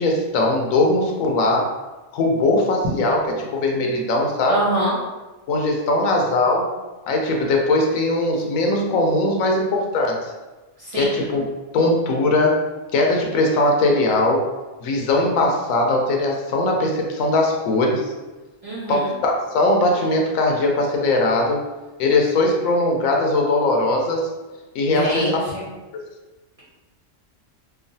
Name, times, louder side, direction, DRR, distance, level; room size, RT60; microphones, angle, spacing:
voice 1, 0.0-1.7 2.1-4.6 5.5-6.7 7.1-10.3 10.9-11.4 11.7-12.6 12.9-14.5 14.8-18.1 18.9-21.6 22.0-24.3 24.7-25.4, left 2 dB, 90° left, 0 dB, 1.0 m, -20 dB
voice 2, 4.5-4.9 10.8-11.2 18.6-19.1 24.9-25.6, equal, 35° right, -9 dB, 0.7 m, -25 dB
3.0 x 2.2 x 2.6 m, 1.1 s
omnidirectional pair, 1.3 m